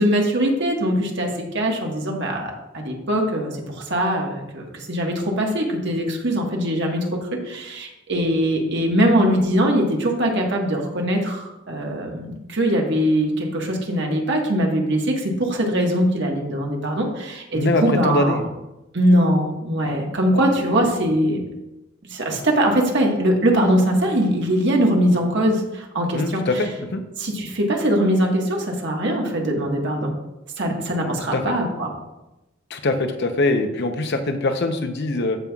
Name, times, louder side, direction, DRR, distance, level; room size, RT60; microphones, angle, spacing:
voice 1, 0.0-3.5 3.9-18.4 18.9-21.4 22.0-26.6 27.2-30.1 30.6-31.9, equal, 60° right, 0 dB, 1.5 m, -21 dB
voice 2, 17.5-18.4 19.8-20.0 20.3-20.4 26.1-27.0 31.3-31.4 32.7-35.4, left 2 dB, 60° left, 6 dB, 0.8 m, -23 dB
14.5 x 5.5 x 2.4 m, 0.96 s
head